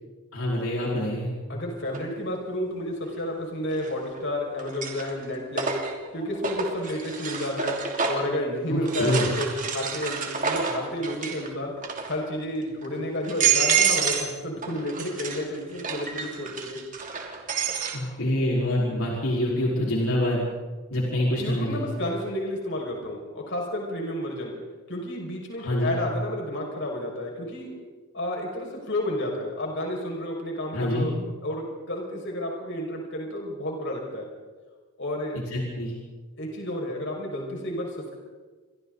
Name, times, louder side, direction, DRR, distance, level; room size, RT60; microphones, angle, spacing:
voice 1, 0.3-1.3 8.7-9.3 17.9-20.4 20.9-21.8 25.6-26.0 30.7-31.2 35.3-35.9, left 1 dB, 75° left, -4 dB, 4.9 m, -26 dB
voice 2, 1.5-5.7 6.1-7.8 8.1-11.7 12.1-16.8 21.3-24.5 24.9-27.7 28.1-31.1 31.4-34.3 35.0-35.4 36.4-38.2, left 1 dB, 55° left, 0 dB, 6.1 m, -31 dB
sound 1, 1.9-2.0 3.7-4.2 4.6-8.4 8.9-11.5 11.8-12.3 12.8-12.9 13.2-14.3 14.6-18.0, right 6 dB, 35° right, 3.0 m, -28 dB
29.0 x 24.0 x 4.1 m, 1.3 s
head